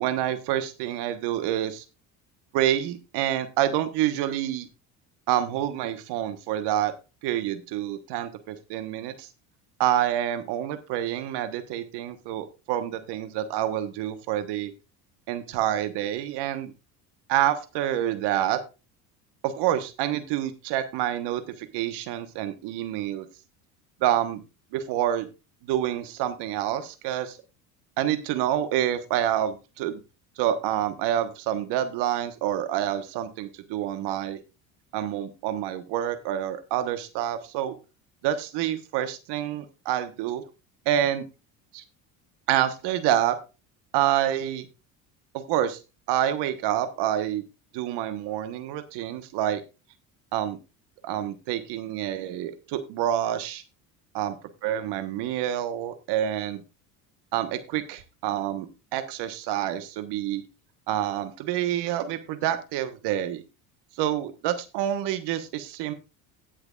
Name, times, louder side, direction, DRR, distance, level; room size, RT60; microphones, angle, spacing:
voice 1, 0.0-1.8 2.5-4.7 5.3-6.9 7.2-9.3 9.8-14.7 15.3-16.7 17.3-18.6 19.4-23.2 24.0-24.4 24.7-25.3 25.7-27.4 28.0-30.0 30.4-34.4 34.9-37.7 38.2-40.4 40.8-41.3 41.7-41.8 42.5-43.4 43.9-44.6 45.3-45.8 46.1-47.4 47.7-49.6 50.3-50.6 51.0-53.6 54.1-54.4 54.6-56.6 57.3-60.4 60.9-63.4 64.0-65.9, right 11 dB, 65° right, 10 dB, 1.4 m, -27 dB
18.5 x 6.5 x 2.4 m, 0.28 s
hypercardioid pair, 75°, 44 cm